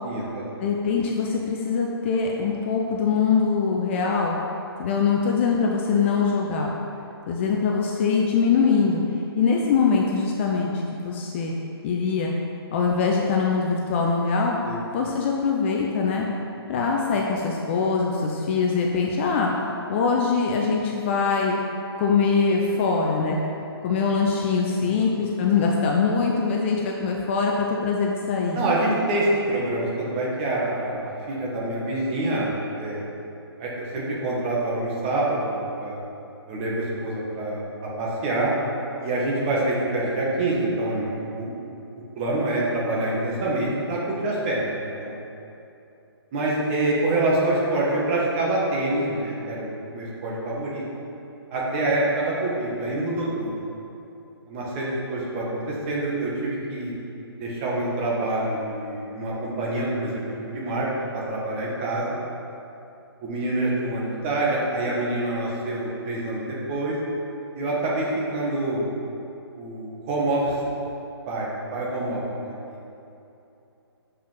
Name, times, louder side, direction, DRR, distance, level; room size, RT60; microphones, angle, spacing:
voice 1, 0.0-0.7 14.7-14.8 24.8-25.0 28.5-33.0 33.6-36.0 36.5-38.5 39.0-41.5 42.2-45.2 46.3-50.8 51.5-53.5 54.5-56.9 57.4-60.9 61.1-62.2 63.2-67.0 67.5-68.9 69.6-70.6 71.3-72.8, right 2 dB, 25° right, -5 dB, 1.7 m, -26 dB
voice 2, 0.6-4.4 4.8-6.7 7.3-9.0 9.4-11.5 11.8-12.3 12.7-14.6 14.9-16.3 16.7-21.6 22.0-23.4 23.8-28.6, left 5 dB, 30° left, -1 dB, 0.6 m, -23 dB
7.2 x 5.5 x 5.7 m, 2.8 s
hypercardioid pair, 150°, 14 cm